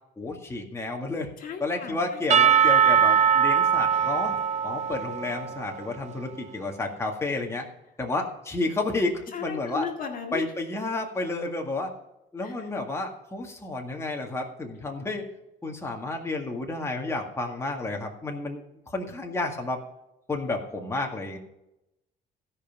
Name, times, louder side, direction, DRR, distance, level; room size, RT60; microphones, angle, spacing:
voice 1, 0.2-1.3 1.6-4.4 4.6-7.7 8.0-9.9 10.3-11.9 12.3-15.3 15.6-19.8 20.3-21.4, left 2 dB, 15° left, 1 dB, 2.0 m, -31 dB
voice 2, 1.4-2.2 9.3-10.4 12.4-12.7, left 6 dB, 55° left, 3 dB, 1.8 m, -36 dB
Percussion / Church bell, 2.3-6.2, right 8 dB, 45° right, 0.6 m, -22 dB
16.5 x 5.5 x 5.9 m, 0.87 s
cardioid pair, 110°, 17 cm